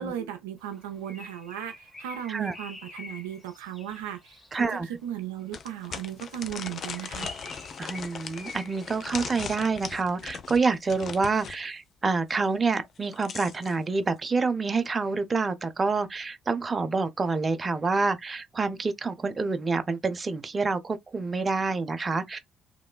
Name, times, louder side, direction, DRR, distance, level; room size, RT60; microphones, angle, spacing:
voice 1, 0.0-7.3, right 10 dB, 75° right, 0.4 m, -36 dB
Bird, 0.7-4.8 6.4-9.9, left 2 dB, 20° left, 2.1 m, -46 dB
sound 1, 4.0-4.1 4.6-4.7 5.5-11.6 12.8-13.8, left 6 dB, 50° left, 0.5 m, -39 dB
voice 2, 4.5-4.9 7.8-22.4, right 4 dB, 35° right, 0.6 m, -27 dB
3.1 x 2.9 x 2.2 m
figure-of-eight pair, 50°, 0 cm